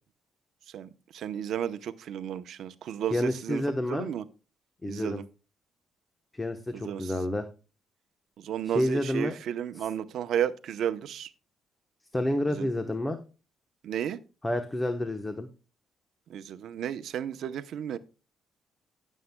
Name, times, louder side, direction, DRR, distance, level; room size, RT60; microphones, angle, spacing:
voice 1, 0.7-3.6 3.9-4.2 4.9-5.2 6.7-7.1 8.4-11.3 12.6-12.7 13.8-14.2 16.3-18.0, right 9 dB, 70° right, 0.7 m, -33 dB
voice 2, 3.1-4.1 4.8-5.2 6.3-7.5 8.6-9.4 9.7-9.9 12.1-13.2 14.4-15.5, left 1 dB, 15° left, 1.0 m, -29 dB
17.5 x 7.3 x 2.2 m
cardioid pair, 115°, 0 cm